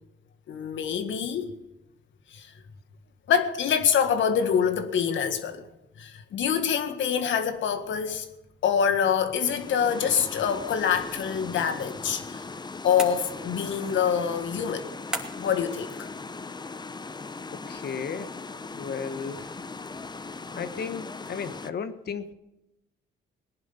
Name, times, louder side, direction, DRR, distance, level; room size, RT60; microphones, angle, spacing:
voice 1, 0.5-1.5 2.3-2.5 3.3-5.7 6.0-8.3 8.6-12.4 12.8-14.9 15.4-16.1, left 7 dB, 70° left, 1.8 m, -25 dB
sound 1, 9.3-21.7, left 4 dB, 20° left, 0.8 m, -39 dB
sound 2, 13.0-13.7 15.1-15.6, right 1 dB, 5° right, 2.8 m, -35 dB
voice 2, 17.5-18.3 18.7-19.5 20.5-22.3, left 6 dB, 55° left, 1.4 m, -34 dB
19.0 x 10.5 x 5.8 m
cardioid pair, 90°, 20 cm